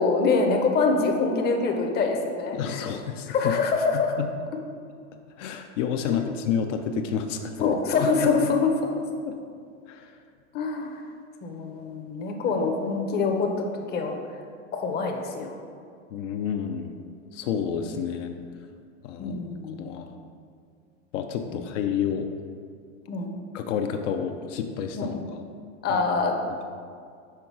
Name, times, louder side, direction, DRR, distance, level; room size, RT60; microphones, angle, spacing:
voice 1, 0.0-2.9 3.3-4.1 6.0-6.3 7.6-8.9 10.5-11.0 11.4-13.6 13.9-14.2 14.7-15.6 19.2-19.9 23.1-23.3 24.9-25.1 25.8-26.4, left 4 dB, 25° left, 3 dB, 0.6 m, -25 dB
voice 2, 2.5-3.5 4.2-4.3 5.4-7.7 9.9-10.1 16.1-17.0 17.3-18.3 19.0-19.4 19.8-20.1 21.1-22.3 23.5-25.4 25.9-26.0, left 7 dB, 65° left, 5 dB, 0.6 m, -29 dB
5.8 x 3.8 x 4.6 m, 2.2 s
hypercardioid pair, 115°, 39 cm